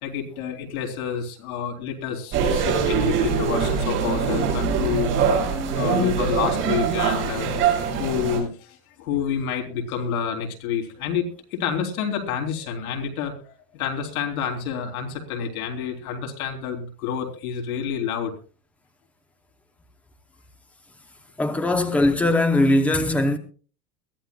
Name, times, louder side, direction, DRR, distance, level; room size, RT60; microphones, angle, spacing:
voice 1, 0.0-5.1 5.7-7.5 7.8-18.4, left 7 dB, 85° left, 3.8 m, -28 dB
sound 1, 2.3-8.4, right 6 dB, 30° right, 6.4 m, -23 dB
voice 2, 21.4-23.4, left 1 dB, 5° left, 0.7 m, -20 dB
21.5 x 14.5 x 2.3 m
supercardioid pair, 170°, 42 cm